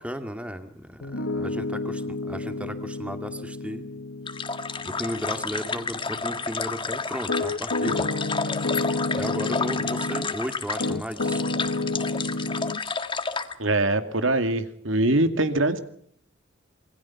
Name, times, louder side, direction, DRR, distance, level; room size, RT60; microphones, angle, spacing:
voice 1, 0.0-3.8 4.8-8.1 9.2-11.4, equal, 5° right, 7 dB, 2.3 m, -34 dB
Piano, 1.0-10.4 10.8-12.8, left 2 dB, 80° left, 1.5 m, -31 dB
sound 1, 4.3-13.5, left 4 dB, 25° left, 1.8 m, -31 dB
voice 2, 13.6-15.8, right 2 dB, 70° right, 9 dB, 2.3 m, -23 dB
27.0 x 22.5 x 5.9 m, 0.66 s
head